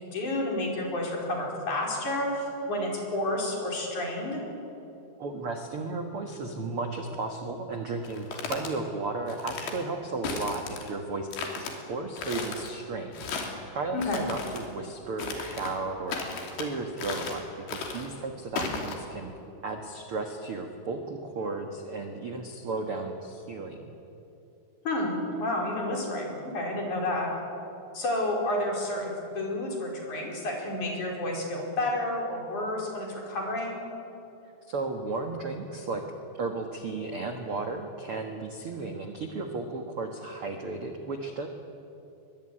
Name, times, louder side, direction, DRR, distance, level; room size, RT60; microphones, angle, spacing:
voice 1, 0.1-4.4 13.9-14.2 24.8-27.3 27.9-33.8, left 1 dB, 45° left, -1 dB, 6.0 m, -30 dB
voice 2, 5.2-13.3 13.7-19.3 19.6-23.9 34.7-36.0 36.4-41.5, right 3 dB, 70° right, 4 dB, 1.3 m, -34 dB
sound 1, 8.1-8.7 9.3-9.8 10.2-10.9 11.3-11.7 12.2-12.7 13.1-13.6 14.0-14.7 15.2-15.8 16.1-16.7 17.0-17.4 17.7-18.1 18.6-19.0, left 5 dB, 75° left, 5.1 m, -35 dB
23.0 x 22.5 x 9.9 m, 2.9 s
omnidirectional pair, 5.1 m